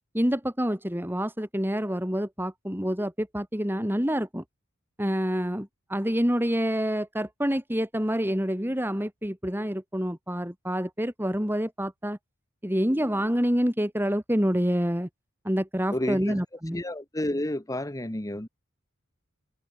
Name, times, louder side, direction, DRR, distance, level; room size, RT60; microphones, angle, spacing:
voice 1, 0.1-4.4 5.0-12.2 12.6-15.1 15.4-16.8, equal, 10° right, 5.3 m, -27 dB
voice 2, 15.9-16.4 16.7-18.5, left 1 dB, 15° left, 1.3 m, -30 dB
open air
head